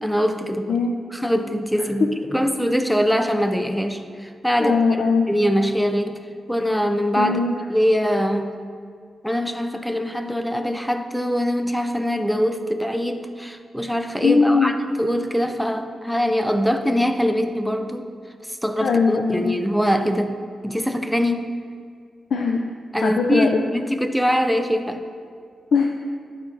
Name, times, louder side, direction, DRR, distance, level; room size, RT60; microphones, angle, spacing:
voice 1, 0.0-0.8 1.1-4.7 5.3-6.2 6.5-8.6 9.2-18.1 18.5-20.4 20.6-21.5 22.9-25.0, equal, ahead, 8 dB, 0.4 m, -23 dB
voice 2, 4.6-5.3 7.2-7.5 14.2-14.7 18.8-19.5 22.3-22.6 23.0-23.6 25.7-25.9, left 4 dB, 60° left, 2 dB, 0.4 m, -20 dB
11.5 x 4.3 x 3.9 m, 2.2 s
wide cardioid pair, 170°, 0 cm